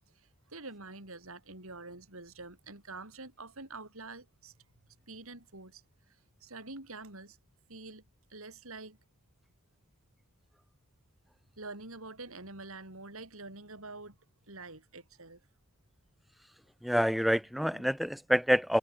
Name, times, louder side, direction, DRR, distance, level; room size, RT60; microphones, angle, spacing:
voice 1, 0.2-4.5 5.1-5.8 6.4-7.4 7.7-8.0 8.3-9.0 11.6-14.2 14.5-15.4 17.7-17.9, right 3 dB, 70° right, 5.7 m, -46 dB
voice 2, 16.8-18.8, equal, ahead, 0.3 m, -27 dB
head